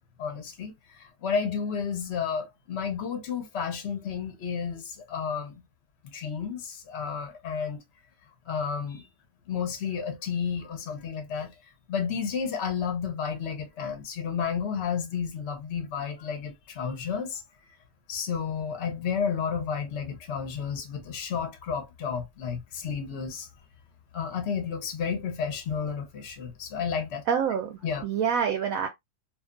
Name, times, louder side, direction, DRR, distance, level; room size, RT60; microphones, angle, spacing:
voice 1, 0.2-5.6 6.0-7.8 8.5-9.1 9.5-11.5 11.9-17.4 18.1-23.5 24.1-27.2 27.8-28.0, left 6 dB, 60° left, 0.7 m, -31 dB
voice 2, 27.3-28.9, right 7 dB, 70° right, 0.9 m, -27 dB
2.7 x 2.3 x 2.4 m
omnidirectional pair, 1.8 m